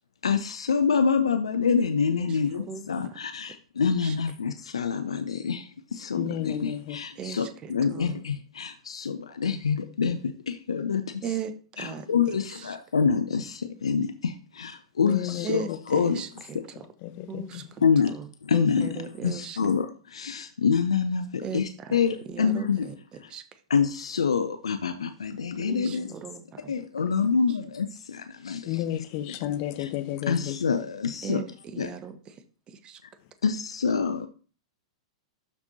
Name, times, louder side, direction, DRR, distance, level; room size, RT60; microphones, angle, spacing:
voice 1, 0.2-11.2 11.8-16.2 17.8-18.1 18.4-22.9 23.7-26.1 26.7-29.0 29.8-29.9 30.3-31.4 31.8-31.9 33.0-33.1 33.4-34.3, left 6 dB, 80° left, 0.6 m, -26 dB
voice 2, 2.2-3.2 4.0-4.2 7.2-8.2 11.2-12.1 12.5-12.8 15.4-16.9 17.3-19.6 21.4-22.0 22.3-23.6 25.6-26.7 27.5-27.6 31.2-33.0, right 7 dB, 30° right, 0.9 m, -38 dB
voice 3, 6.1-7.0 15.0-15.6 17.0-17.7 28.7-30.6, left 12 dB, 45° left, 0.9 m, -32 dB
12.5 x 4.3 x 2.8 m
figure-of-eight pair, 100°, 3 cm